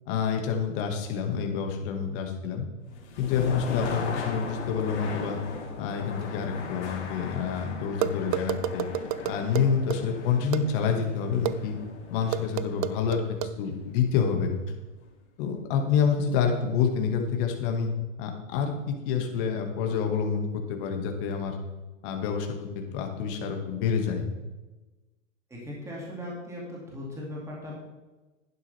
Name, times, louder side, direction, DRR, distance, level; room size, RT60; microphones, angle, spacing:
voice 1, 0.1-2.7 3.2-5.4 5.8-8.9 9.2-11.8 12.1-14.5 15.4-17.9 18.2-21.6 22.0-22.7 22.9-24.3, left 6 dB, 40° left, 3 dB, 2.0 m, -28 dB
sound 1, 2.9-14.7, left 5 dB, 60° left, 3.0 m, -39 dB
sound 2, 8.0-10.0 10.5-10.6 11.5-11.6 12.3-13.5, right 10 dB, 40° right, 0.5 m, -29 dB
voice 2, 25.5-27.7, left 1 dB, 5° right, -3 dB, 2.5 m, -38 dB
11.5 x 10.5 x 3.5 m, 1.1 s
hypercardioid pair, 130°, 39 cm